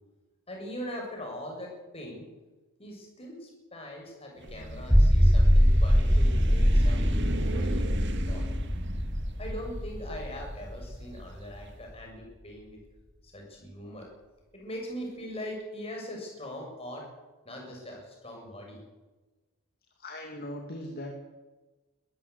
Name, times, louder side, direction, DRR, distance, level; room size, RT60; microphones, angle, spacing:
voice 1, 0.5-2.3 2.8-7.1 7.5-8.5 9.4-12.8 13.2-14.1 14.5-17.1 17.4-18.8, equal, 25° left, 0 dB, 7.0 m, -41 dB
sound 1, 4.4-11.5, right 1 dB, 50° right, 2.2 m, -38 dB
sound 2, 4.7-11.2, equal, ahead, 0.8 m, -23 dB
voice 2, 20.0-21.1, left 1 dB, 45° left, 2 dB, 2.7 m, -39 dB
22.0 x 14.0 x 8.4 m, 1.2 s
head